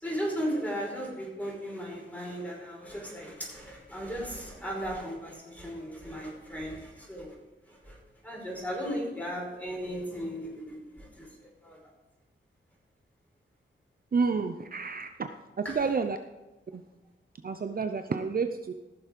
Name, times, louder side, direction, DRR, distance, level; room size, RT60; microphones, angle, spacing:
voice 1, 0.0-7.4 7.6-8.0 8.2-11.8 15.6-15.8, equal, 5° left, -2 dB, 5.0 m, -36 dB
voice 2, 14.1-15.3 15.6-16.2 16.7-16.8 17.4-18.7, right 5 dB, 45° right, 7 dB, 0.6 m, -29 dB
15.0 x 7.0 x 5.2 m, 1.1 s
wide cardioid pair, 100°, 21 cm